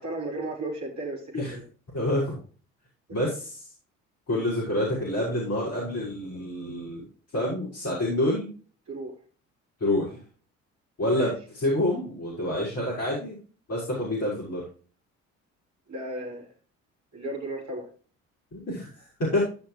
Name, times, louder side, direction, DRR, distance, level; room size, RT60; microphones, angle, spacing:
voice 1, 0.0-1.7 8.9-9.1 11.1-11.3 15.9-16.5 17.1-17.9, right 1 dB, 45° right, -1 dB, 5.2 m, -34 dB
voice 2, 1.9-2.4 3.1-3.7 4.3-7.0 7.3-8.5 9.8-10.2 11.0-13.4 13.7-14.6 18.5-19.5, left 1 dB, 40° left, -6 dB, 5.8 m, -27 dB
15.5 x 6.1 x 3.2 m, 0.39 s
figure-of-eight pair, 50°, 39 cm